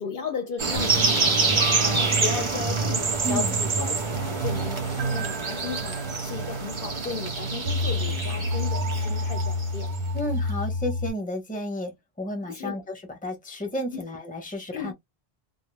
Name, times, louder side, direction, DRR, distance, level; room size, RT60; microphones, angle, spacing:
voice 1, 0.0-9.9 12.5-12.8 13.9-14.1 14.7-14.9, left 6 dB, 65° left, 0.7 m, -35 dB
sound 1, 0.6-10.0, right 4 dB, 35° right, 0.6 m, -27 dB
sound 2, 0.7-11.1, equal, 80° right, 0.8 m, -30 dB
voice 2, 3.2-3.6 10.1-14.9, equal, 10° left, 0.7 m, -32 dB
2.2 x 2.1 x 3.1 m
omnidirectional pair, 1.1 m